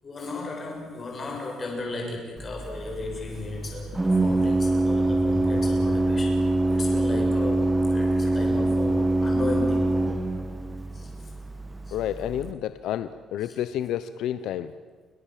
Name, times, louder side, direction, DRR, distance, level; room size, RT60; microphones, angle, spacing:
voice 1, 0.0-6.4 6.7-9.9 10.9-11.3 11.9-12.0 13.4-13.6, left 2 dB, 25° left, 1 dB, 7.1 m, -35 dB
Organ, 2.4-12.5, right 2 dB, 10° right, 1.6 m, -25 dB
voice 2, 11.9-14.7, left 11 dB, 75° left, 12 dB, 0.9 m, -30 dB
29.5 x 25.0 x 7.6 m, 1.4 s
cardioid pair, 180°, 0 cm